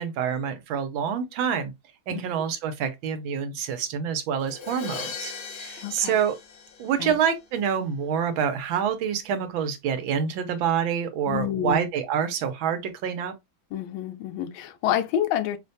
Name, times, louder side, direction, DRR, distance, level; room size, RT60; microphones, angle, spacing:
voice 1, 0.0-1.7 2.1-6.3 6.8-13.3, right 7 dB, 85° right, 1.5 m, -27 dB
Crash cymbal, 4.4-7.4, left 5 dB, 65° left, 1.2 m, -38 dB
voice 2, 5.8-6.2 7.0-7.2 11.3-11.8 13.7-15.6, left 10 dB, 90° left, 1.4 m, -28 dB
5.1 x 2.1 x 2.6 m
omnidirectional pair, 2.1 m